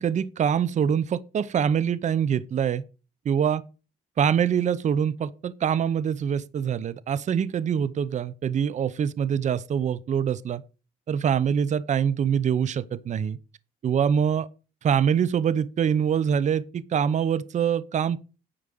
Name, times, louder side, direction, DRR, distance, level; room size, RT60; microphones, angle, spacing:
voice 1, 0.0-2.8 3.2-3.6 4.2-10.6 11.1-13.4 13.8-14.5 14.8-18.2, right 8 dB, 45° right, 0.8 m, -24 dB
9.9 x 5.1 x 7.7 m
cardioid pair, 95°, 17 cm